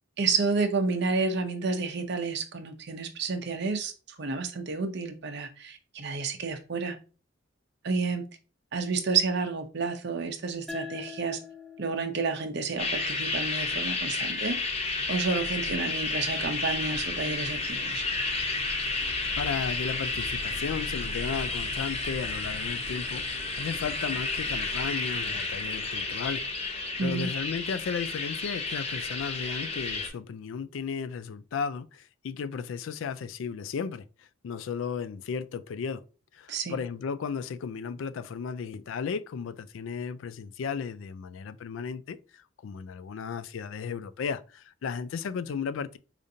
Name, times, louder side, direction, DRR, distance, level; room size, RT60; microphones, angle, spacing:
voice 1, 0.2-3.9 4.2-7.0 7.8-8.3 8.7-11.4 11.8-14.8 15.1-18.0 27.0-27.3 36.5-36.8, right 4 dB, 60° right, 0.7 m, -30 dB
sound 1, 10.7-13.9, left 6 dB, 5° left, 0.3 m, -45 dB
sound 2, 12.8-30.1, left 3 dB, 30° left, 0.6 m, -31 dB
sound 3, 13.7-26.4, equal, 15° right, 0.8 m, -44 dB
voice 2, 19.4-26.4 26.7-36.0 36.3-46.0, left 6 dB, 80° left, 0.3 m, -35 dB
5.0 x 2.5 x 2.7 m
head